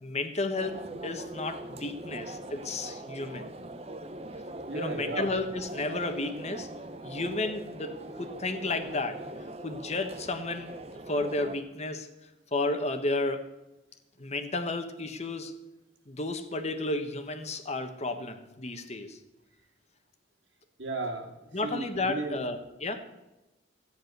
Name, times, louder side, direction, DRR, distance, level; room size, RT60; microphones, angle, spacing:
voice 1, 0.0-3.5 4.7-6.7 7.0-9.2 9.6-10.8 11.1-12.1 12.5-13.4 14.2-15.5 16.1-19.2 21.5-23.0, left 2 dB, 35° left, 8 dB, 1.3 m, -32 dB
sound 1, 0.6-11.6, right 1 dB, 35° right, 0.9 m, -42 dB
voice 2, 4.7-5.3 20.8-21.3 21.6-22.4, right 2 dB, 70° right, 1 dB, 2.7 m, -34 dB
13.5 x 10.0 x 6.6 m, 1.0 s
head